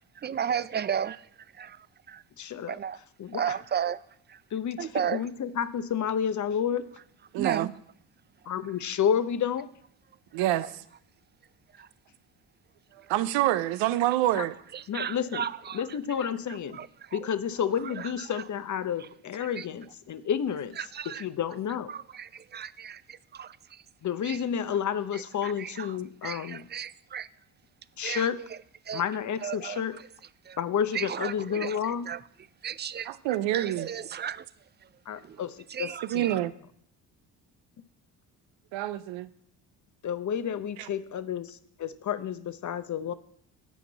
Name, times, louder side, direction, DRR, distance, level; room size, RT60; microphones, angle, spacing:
voice 1, 0.2-2.2 2.7-3.0 3.3-4.0 4.3-4.4 4.8-5.3 7.4-7.7 10.6-10.7 11.7-11.9 14.3-14.4 14.7-17.2 17.8-18.4 19.0-19.1 19.4-19.7 20.8-21.3 21.9-23.8 24.2-24.4 25.1-27.3 28.0-28.6 28.8-29.0 29.4-30.0 30.4-30.6 30.9-32.2 32.6-34.5 34.8-35.4 35.7-36.4, right 8 dB, 25° right, 0.3 m, -35 dB
voice 2, 2.4-2.8 3.2-3.4 4.5-6.9 8.5-9.7 14.4-14.5 14.9-15.4 15.7-16.8 17.1-20.8 21.2-21.9 24.0-26.7 28.0-28.4 28.9-30.0 30.6-32.1 35.1-36.4 40.0-43.1, left 8 dB, 40° left, 0.8 m, -30 dB
voice 3, 7.3-7.7 10.3-10.7 13.1-14.6 33.1-33.9 36.1-36.5 38.7-39.3 40.8-40.9, right 14 dB, 75° right, 0.7 m, -27 dB
9.3 x 5.3 x 7.2 m
hypercardioid pair, 55°, 46 cm